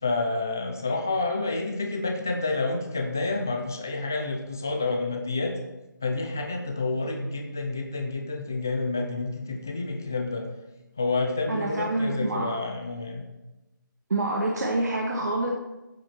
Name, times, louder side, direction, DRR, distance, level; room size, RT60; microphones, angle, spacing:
voice 1, 0.0-5.6 6.0-10.5 11.0-13.2, left 3 dB, 10° left, 3 dB, 0.4 m, -29 dB
voice 2, 11.5-12.5 14.1-15.5, right 2 dB, 50° right, -1 dB, 1.7 m, -27 dB
14.0 x 7.6 x 4.3 m, 1.0 s
hypercardioid pair, 175°, 11 cm